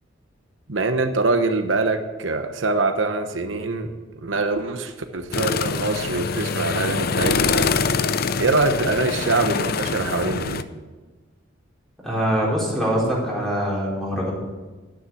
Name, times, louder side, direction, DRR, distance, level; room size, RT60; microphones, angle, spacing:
voice 1, 0.7-3.9 4.2-7.8 8.4-10.7, right 3 dB, 85° right, 7 dB, 1.1 m, -24 dB
sound 1, 5.3-10.6, left 5 dB, 55° left, 0.6 m, -24 dB
voice 2, 12.0-14.3, equal, ahead, -5 dB, 4.6 m, -23 dB
11.5 x 10.0 x 7.7 m, 1.3 s
head